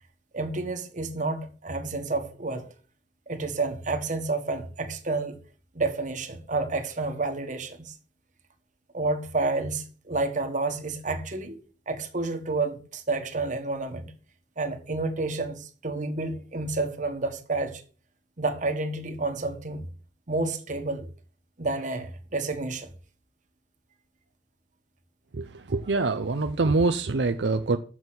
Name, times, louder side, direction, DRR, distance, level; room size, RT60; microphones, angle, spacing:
voice 1, 0.3-2.7 3.3-5.4 5.7-8.0 8.9-11.6 11.9-14.1 14.6-17.8 18.4-19.9 20.3-21.1 21.6-22.9, right 3 dB, 45° right, 1.4 m, -30 dB
voice 2, 25.3-27.8, right 3 dB, 75° right, 0.6 m, -25 dB
7.3 x 6.2 x 7.8 m
head